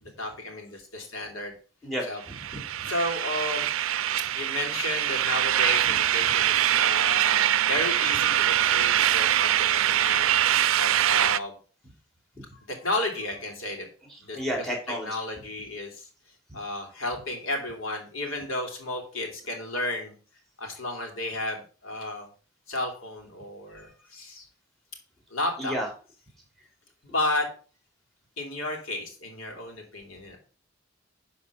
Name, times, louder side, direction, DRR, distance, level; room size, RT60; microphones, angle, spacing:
voice 1, 0.0-1.5 2.0-2.2 2.9-3.7 4.0-10.3 10.7-11.6 12.7-13.9 14.2-14.7 15.0-16.1 16.5-20.1 20.6-22.3 22.7-24.5 25.3-25.8 27.0-27.5 28.4-30.4, left 2 dB, 90° left, 3 dB, 3.1 m, -33 dB
voice 2, 1.8-2.9 12.3-12.4 14.3-15.1 25.6-25.9, equal, ahead, 0 dB, 3.4 m, -32 dB
sound 1, 2.3-11.4, right 11 dB, 85° right, 0.5 m, -23 dB
11.0 x 4.3 x 6.8 m, 0.38 s
head